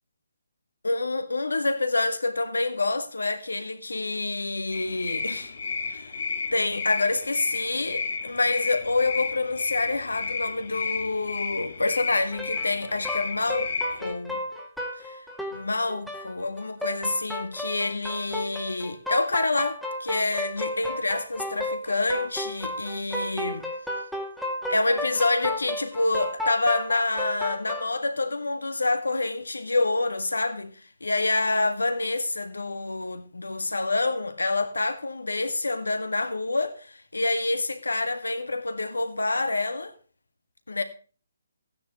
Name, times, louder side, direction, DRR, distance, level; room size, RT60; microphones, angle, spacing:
voice 1, 0.8-5.5 5.8-6.2 6.5-14.4 14.9-15.3 15.5-23.7 24.7-39.9 40.7-40.8, left 2 dB, 75° left, 1.8 m, -27 dB
sound 1, 4.7-14.1, left 5 dB, 55° left, 1.8 m, -32 dB
sound 2, 12.2-27.9, left 1 dB, ahead, 2.0 m, -33 dB
15.5 x 9.7 x 3.1 m
figure-of-eight pair, 140°, 0 cm